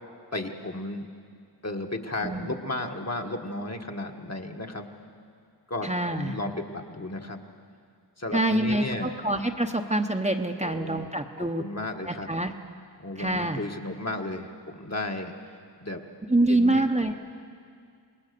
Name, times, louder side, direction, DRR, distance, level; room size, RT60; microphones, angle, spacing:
voice 1, 0.3-1.1 1.6-4.9 5.7-7.4 8.2-9.1 10.6-11.1 11.4-12.3 13.0-15.3 15.8-16.0 16.5-16.9, left 2 dB, 40° left, 3 dB, 1.7 m, -34 dB
voice 2, 2.2-2.5 5.8-6.4 8.3-11.6 12.0-12.6 13.2-13.6 16.3-17.1, right 1 dB, 15° right, 4 dB, 1.0 m, -26 dB
27.5 x 19.5 x 6.9 m, 2.2 s
wide cardioid pair, 65°, 42 cm